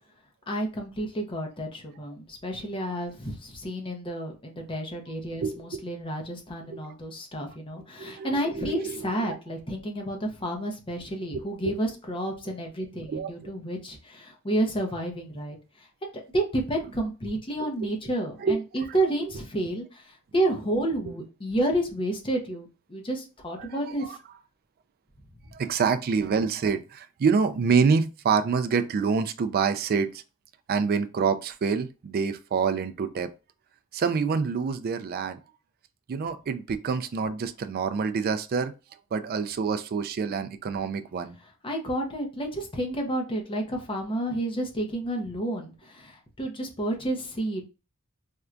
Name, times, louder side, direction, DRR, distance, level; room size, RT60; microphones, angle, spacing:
voice 1, 0.5-15.6 16.0-24.2 41.6-47.7, right 1 dB, 25° left, 0.6 m, -30 dB
voice 2, 5.4-5.8 6.7-6.8 8.0-9.3 11.3-11.7 13.1-13.5 18.4-18.6 23.6-23.7 24.1-24.2 25.5-30.2 30.7-33.3 33.9-35.4 36.1-38.7 39.1-41.4, right 5 dB, 45° right, 0.3 m, -27 dB
4.4 x 2.2 x 2.5 m
head